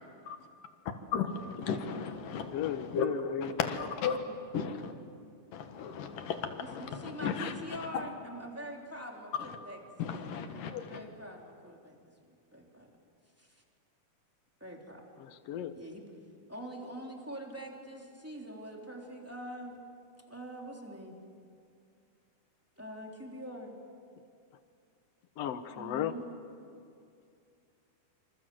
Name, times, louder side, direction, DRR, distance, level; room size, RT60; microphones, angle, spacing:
voice 1, 1.1-3.1 3.4-4.2 4.5-4.9 5.5-8.1 9.4-9.5 10.0-11.0, left 6 dB, 80° left, 7 dB, 3.2 m, -35 dB
voice 2, 2.5-3.5 15.2-15.8 25.4-26.2, left 10 dB, 65° left, 11 dB, 1.8 m, -35 dB
voice 3, 6.6-9.8 10.1-10.2 10.9-12.0 12.3-12.9 13.4-13.6 14.6-15.1 15.7-16.1 16.5-19.8 20.3-21.2 22.8-23.8 25.7-26.3, equal, 5° right, 0 dB, 2.9 m, -44 dB
27.0 x 26.5 x 7.8 m, 2.4 s
omnidirectional pair, 3.8 m